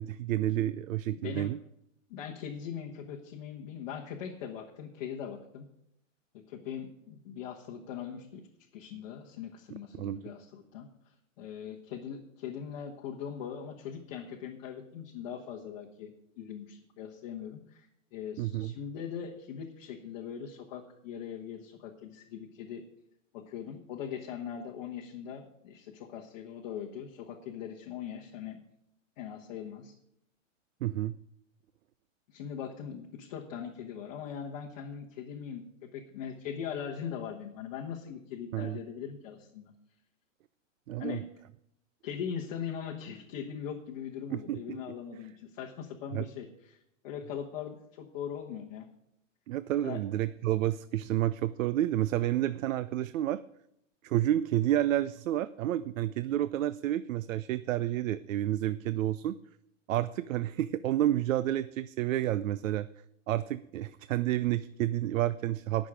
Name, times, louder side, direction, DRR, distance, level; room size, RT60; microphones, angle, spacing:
voice 1, 0.0-1.6 10.0-10.2 18.4-18.7 30.8-31.1 38.5-38.8 40.9-41.2 44.3-44.8 46.1-46.2 49.5-53.4 54.0-59.4 59.9-62.9 63.3-65.9, right 13 dB, 85° right, 15 dB, 0.6 m, -30 dB
voice 2, 1.1-1.5 2.1-5.7 6.5-8.4 8.7-10.9 11.4-22.8 23.3-28.6 29.2-29.9 32.3-39.7 41.0-41.2 42.0-46.8 47.0-48.9 49.8-50.0, left 8 dB, 35° left, -1 dB, 1.1 m, -40 dB
18.5 x 6.4 x 4.9 m, 0.78 s
supercardioid pair, 170°, 39 cm